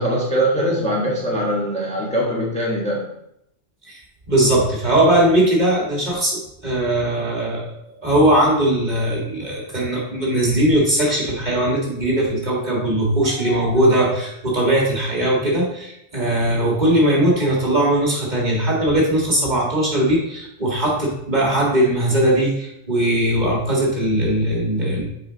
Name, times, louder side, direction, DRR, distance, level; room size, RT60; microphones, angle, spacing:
voice 1, 0.0-3.1, equal, 5° left, -4 dB, 1.2 m, -22 dB
voice 2, 4.3-7.7 8.0-25.1, right 1 dB, 40° right, -4 dB, 2.0 m, -19 dB
7.1 x 4.9 x 3.9 m, 0.79 s
omnidirectional pair, 1.2 m